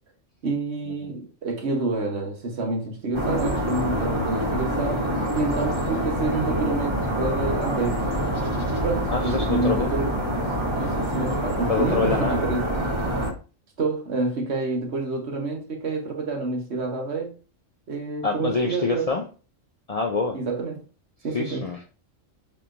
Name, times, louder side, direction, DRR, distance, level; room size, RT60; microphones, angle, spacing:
voice 1, 0.4-5.1 5.3-8.0 8.7-10.2 10.8-12.7 13.8-17.3 17.9-19.0 20.3-20.7 21.2-21.6, right 3 dB, 55° right, 1.3 m, -28 dB
sound 1, 3.1-13.3, equal, 20° right, 1.2 m, -26 dB
voice 2, 9.1-9.9 10.3-10.4 11.7-12.4 18.2-19.2 19.9-20.4 21.3-21.9, left 4 dB, 70° left, 0.3 m, -26 dB
6.7 x 3.1 x 2.5 m
omnidirectional pair, 1.4 m